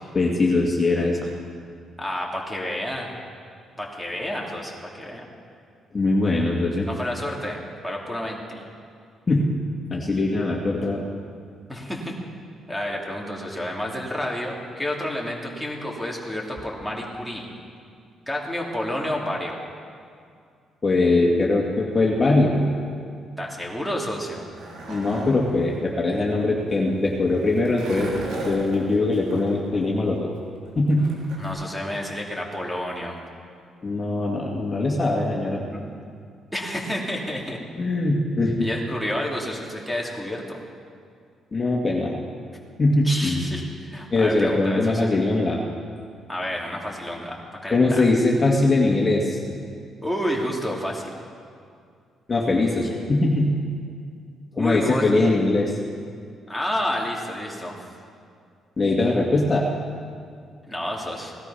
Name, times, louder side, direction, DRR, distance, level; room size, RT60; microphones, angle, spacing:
voice 1, 0.1-1.3 5.9-6.8 9.3-9.4 9.9-11.0 20.8-22.6 24.9-28.2 28.4-30.3 30.7-31.0 33.8-35.6 37.8-38.7 41.5-42.2 42.8-43.4 44.1-45.6 47.7-49.4 52.3-53.5 54.6-55.7 58.8-59.7, left 2 dB, 30° left, -2 dB, 2.1 m, -21 dB
voice 2, 2.0-3.1 3.8-5.2 6.8-8.6 11.7-12.2 12.7-17.5 18.3-19.6 23.4-24.5 31.4-33.2 35.6-36.0 36.5-37.6 38.6-40.6 43.0-45.1 46.3-48.1 50.0-51.2 54.5-55.0 56.5-57.8 60.7-61.4, left 1 dB, ahead, -1 dB, 2.9 m, -30 dB
Skateboard, 24.0-31.5, right 2 dB, 80° right, 3.3 m, -38 dB
17.5 x 12.5 x 5.7 m, 2.3 s
cardioid pair, 90°, 0 cm